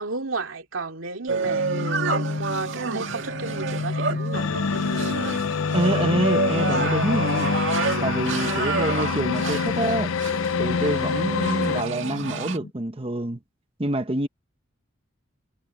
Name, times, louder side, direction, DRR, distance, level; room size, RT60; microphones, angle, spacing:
voice 1, 0.0-4.6, right 3 dB, 90° right, 2.5 m, -33 dB
sound 1, 1.3-12.6, right 4 dB, 70° right, 1.8 m, -29 dB
sound 2, 1.4-12.7, left 3 dB, 60° left, 1.3 m, -32 dB
sound 3, 4.3-11.8, left 6 dB, 90° left, 0.5 m, -26 dB
voice 2, 5.7-7.5 8.0-10.1 10.6-13.4 13.8-14.3, right 1 dB, 30° right, 1.0 m, -26 dB
head